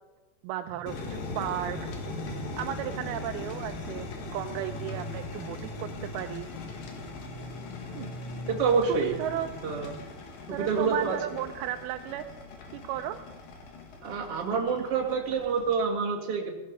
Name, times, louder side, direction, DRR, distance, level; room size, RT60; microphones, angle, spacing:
voice 1, 0.4-1.8 2.6-6.5 7.9-8.1 8.9-9.5 10.5-12.3 12.8-13.2, right 12 dB, 90° right, 6 dB, 2.6 m, -34 dB
sound 1, 0.7-9.8, right 1 dB, 20° left, 0.8 m, -43 dB
sound 2, 0.9-15.8, left 4 dB, 70° left, 3.7 m, -41 dB
voice 2, 8.5-9.1 9.6-9.9 10.5-11.2 14.0-16.5, right 5 dB, 40° right, -1 dB, 3.0 m, -27 dB
16.0 x 15.5 x 5.5 m, 1.2 s
omnidirectional pair, 4.3 m